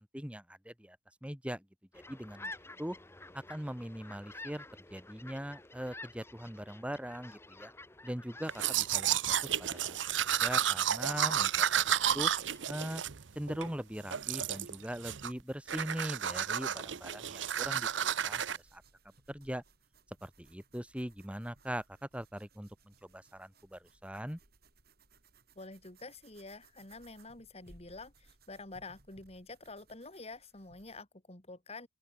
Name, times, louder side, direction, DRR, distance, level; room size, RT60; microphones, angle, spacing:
voice 1, 0.0-1.7 1.9-2.5 2.8-3.0 3.3-4.6 4.9-7.7 8.0-10.0 10.4-12.3 12.7-13.0 13.3-18.8 19.3-19.6 20.2-24.4, equal, 5° right, 2.7 m, -41 dB
sound 1, 1.9-12.7, left 2 dB, 15° left, 1.2 m, -51 dB
Domestic sounds home sounds, 8.5-13.7 14.1-14.8 15.0-15.4 15.7-18.6, right 9 dB, 80° right, 0.8 m, -32 dB
sound 2, 11.9-31.0, right 3 dB, 55° right, 5.9 m, -65 dB
voice 2, 25.5-31.9, left 3 dB, 35° left, 3.3 m, -48 dB
open air
head